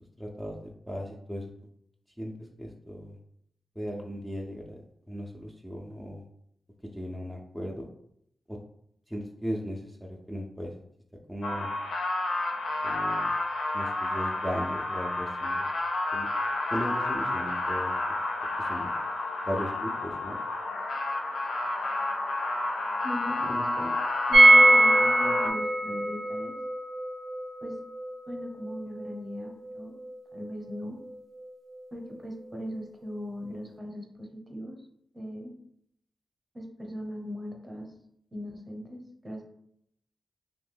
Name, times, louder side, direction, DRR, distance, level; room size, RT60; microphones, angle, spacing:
voice 1, 0.2-0.6 0.9-1.5 2.2-3.2 3.8-6.2 6.8-7.9 8.5-8.6 9.1-10.7 11.3-11.7 12.8-13.3 13.7-15.7 16.1-16.3 16.7-17.9 18.6-18.9 19.4-20.4, equal, ahead, -1 dB, 0.4 m, -37 dB
sound 1, 11.4-25.5, left 2 dB, 90° left, 0.3 m, -30 dB
voice 2, 23.0-23.9 24.3-26.5 27.6-27.7 28.3-30.0 30.3-31.0 31.9-34.8 35.1-35.5 36.5-37.9 38.3-39.4, equal, 30° right, 1 dB, 0.8 m, -39 dB
sound 2, 24.3-30.1 30.3-30.4 30.7-30.8, right 2 dB, 80° right, 0.4 m, -22 dB
2.6 x 2.2 x 3.3 m, 0.72 s
cardioid pair, 45°, 0 cm